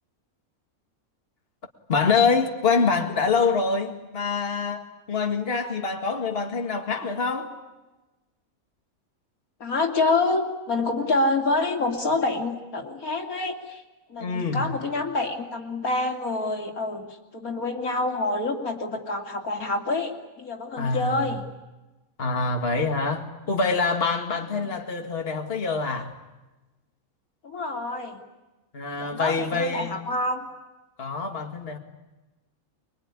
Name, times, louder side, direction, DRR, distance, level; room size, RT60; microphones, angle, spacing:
voice 1, 1.9-7.5 14.2-14.7 20.8-21.3 22.2-26.1 28.7-29.9 31.0-31.8, left 4 dB, 45° left, 2.1 m, -25 dB
voice 2, 9.6-13.8 14.1-17.1 17.3-21.4 27.4-28.2 29.0-30.5, left 2 dB, 85° left, 3.2 m, -27 dB
25.0 x 22.5 x 9.7 m
omnidirectional pair, 1.5 m